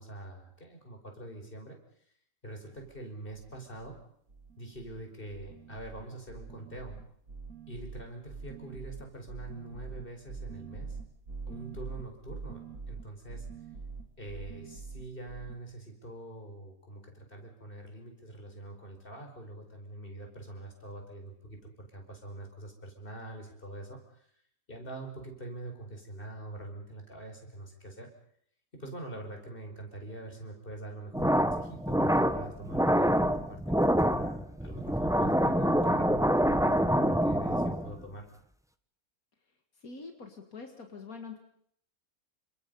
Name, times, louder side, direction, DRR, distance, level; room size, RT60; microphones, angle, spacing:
voice 1, 0.0-1.8 2.4-4.0 4.6-7.0 7.7-11.0 11.5-13.5 14.2-24.0 24.7-28.1 28.7-38.3, right 2 dB, 40° left, 3 dB, 5.3 m, -44 dB
sound 1, 2.8-3.0 3.3-4.0 4.3-5.0 5.3-15.6, right 5 dB, 75° right, 3.2 m, -44 dB
sound 2, 31.1-38.0, equal, 5° right, 0.9 m, -26 dB
voice 2, 39.8-41.4, left 4 dB, 80° left, 4 dB, 2.5 m, -44 dB
29.5 x 26.5 x 5.5 m, 0.67 s
omnidirectional pair, 1.5 m